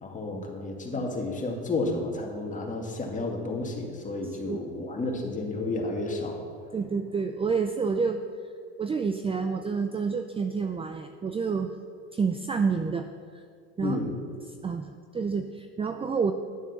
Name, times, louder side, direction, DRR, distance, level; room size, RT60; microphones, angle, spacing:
voice 1, 0.0-6.4 13.8-14.1, left 2 dB, 25° left, 1 dB, 2.4 m, -31 dB
voice 2, 4.2-4.6 6.7-8.2 8.8-11.7 12.1-13.1 13.3-13.4 13.8-14.0 14.6-16.3, right 5 dB, 15° right, 7 dB, 0.5 m, -29 dB
11.5 x 7.1 x 6.9 m, 2.2 s
supercardioid pair, 95°, 32 cm